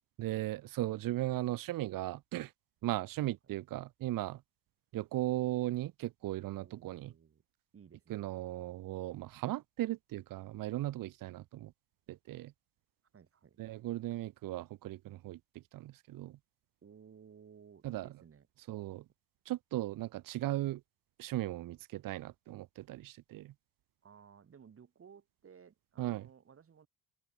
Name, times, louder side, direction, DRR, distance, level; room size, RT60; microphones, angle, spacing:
voice 1, 0.2-2.5 2.8-4.4 4.9-7.1 8.1-11.7 12.1-12.5 13.6-16.4 17.8-18.1 18.7-19.1 19.5-20.8 21.2-23.5 26.0-26.3, right 15 dB, 55° right, 0.9 m, -37 dB
voice 2, 6.6-7.4 7.7-8.3 13.1-13.6 16.8-18.5 24.0-26.9, right 7 dB, 35° right, 4.8 m, -58 dB
open air
cardioid pair, 130°, 39 cm